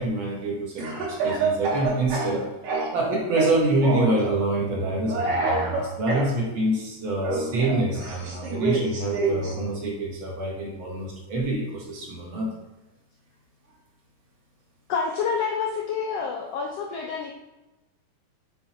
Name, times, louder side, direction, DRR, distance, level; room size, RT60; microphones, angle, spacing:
voice 1, 0.0-2.4 2.9-12.5, right 2 dB, 50° right, -3 dB, 1.9 m, -26 dB
Speech / Cough, 0.8-3.0 3.4-4.2 5.1-6.3 7.2-9.5, right 3 dB, 90° right, 3.2 m, -27 dB
voice 2, 14.9-17.3, left 5 dB, 85° left, 1 dB, 1.4 m, -28 dB
7.9 x 3.9 x 4.3 m, 1.0 s
omnidirectional pair, 3.6 m